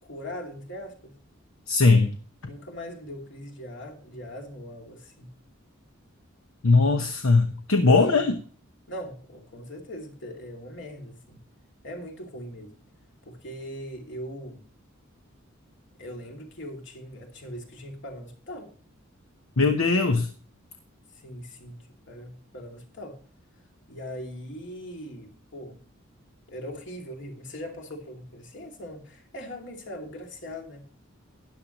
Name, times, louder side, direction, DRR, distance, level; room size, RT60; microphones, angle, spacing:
voice 1, 0.0-1.1 2.4-5.3 8.1-8.3 8.9-11.4 11.8-12.7 13.2-14.6 16.0-18.7 21.1-23.2 23.9-25.8 26.5-30.9, equal, 60° left, 2.6 m, -40 dB
voice 2, 1.7-2.1 6.6-8.4 19.6-20.3, left 3 dB, 75° left, 1.0 m, -20 dB
13.0 x 10.5 x 3.0 m
head